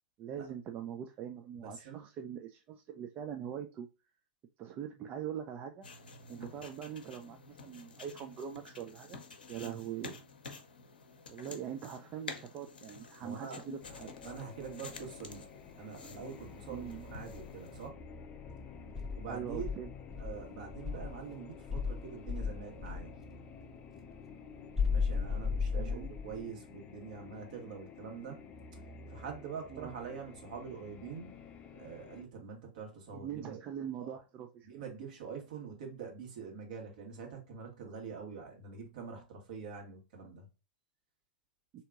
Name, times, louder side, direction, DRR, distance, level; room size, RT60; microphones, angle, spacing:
voice 1, 0.2-3.9 4.6-5.9 6.3-9.2 9.5-10.2 11.3-14.1 16.7-17.1 19.3-19.9 25.7-26.1 29.7-29.9 33.1-34.7, right 9 dB, 35° right, 0.4 m, -42 dB
voice 2, 1.6-2.0 6.4-6.5 9.5-9.8 13.2-13.6 14.2-15.5 15.8-18.0 19.2-19.8 20.2-23.2 24.9-28.4 28.7-28.8 29.1-31.4 31.7-33.6 34.0-34.2 34.6-40.5, right 6 dB, 65° right, 1.3 m, -45 dB
sound 1, 5.8-17.9, left 4 dB, 80° left, 0.6 m, -50 dB
sound 2, 13.8-32.2, left 5 dB, 30° left, 0.5 m, -51 dB
Insect, 18.9-21.2 21.7-23.1 24.7-26.4, left 5 dB, 10° right, 0.8 m, -34 dB
3.5 x 2.7 x 2.4 m
figure-of-eight pair, 95°, 5 cm